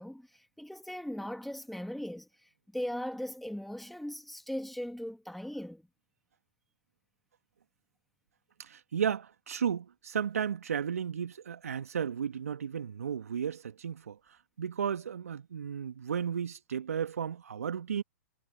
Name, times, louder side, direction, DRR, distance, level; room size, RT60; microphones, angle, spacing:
voice 1, 0.0-5.8, equal, ahead, 2.2 m, -39 dB
voice 2, 8.6-14.2 14.6-18.0, right 8 dB, 70° right, 1.9 m, -34 dB
figure-of-eight pair, 110°, 8 cm